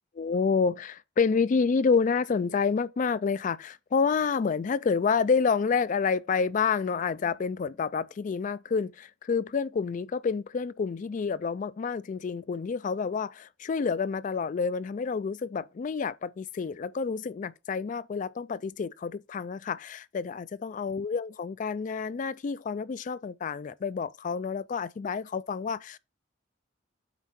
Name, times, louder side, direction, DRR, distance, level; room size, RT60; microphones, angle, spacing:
voice 1, 0.2-26.0, left 5 dB, 45° left, 0.3 m, -28 dB
8.3 x 4.4 x 4.2 m
head